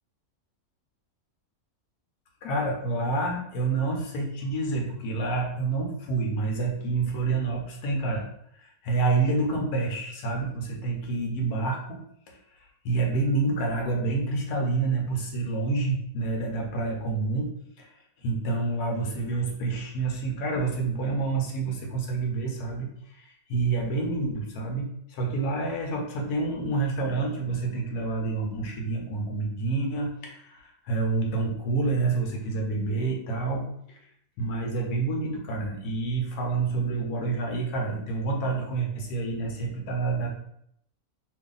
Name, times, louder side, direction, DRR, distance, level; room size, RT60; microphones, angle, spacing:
voice 1, 2.4-8.3 8.6-12.0 12.3-17.5 17.8-34.0 34.4-40.3, right 3 dB, 90° left, 1 dB, 1.2 m, -28 dB
2.7 x 2.6 x 3.7 m, 0.69 s
omnidirectional pair, 1.6 m